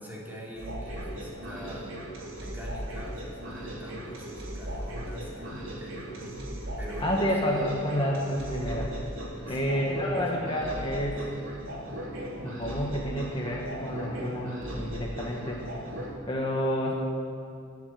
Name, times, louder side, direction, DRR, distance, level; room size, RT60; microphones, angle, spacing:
voice 1, 0.0-1.9 2.4-6.5 6.8-7.4 9.5-9.9 10.1-10.3, equal, 10° right, -4 dB, 2.9 m, -44 dB
sound 1, 0.5-16.1, right 1 dB, 75° right, 3.5 m, -38 dB
voice 2, 7.0-8.9 9.4-11.2 12.4-15.6 16.3-16.9, equal, 25° left, -2 dB, 1.4 m, -29 dB
20.5 x 7.4 x 7.6 m, 2.5 s
head